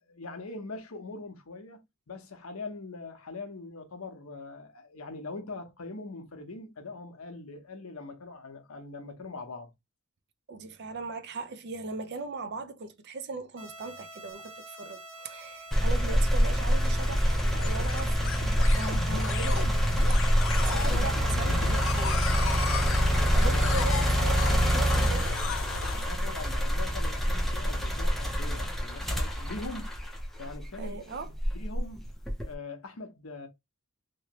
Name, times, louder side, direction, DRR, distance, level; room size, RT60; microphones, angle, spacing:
voice 1, 0.0-9.7 26.1-29.9 30.4-32.1 32.4-33.5, left 3 dB, 80° left, 0.9 m, -42 dB
voice 2, 10.5-19.8 20.0-23.0 23.3-25.3 30.8-31.3, right 3 dB, 50° right, 0.5 m, -39 dB
sound 1, 13.6-22.6, right 2 dB, 80° right, 1.2 m, -46 dB
sound 2, 15.7-30.7 31.3-32.5, equal, ahead, 0.6 m, -26 dB
sound 3, 16.3-26.1, left 5 dB, 60° left, 0.4 m, -35 dB
3.1 x 2.8 x 2.9 m
head